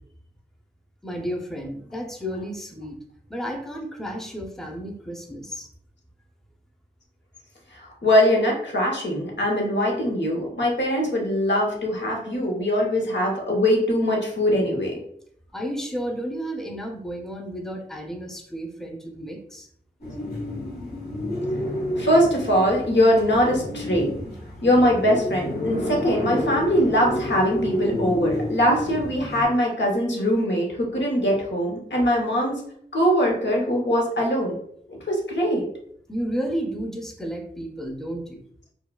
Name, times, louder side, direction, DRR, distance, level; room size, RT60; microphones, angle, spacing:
voice 1, 1.0-3.0 3.3-5.7 15.5-19.7 36.1-38.4, equal, ahead, 2 dB, 0.6 m, -32 dB
voice 2, 7.7-15.0 22.0-24.1 24.6-32.6 32.9-34.5 34.9-35.7, equal, 90° left, -1 dB, 1.0 m, -22 dB
sound 1, 20.0-29.4, left 1 dB, 65° left, 1.5 m, -30 dB
4.5 x 2.3 x 2.3 m, 0.67 s
wide cardioid pair, 60°, 18 cm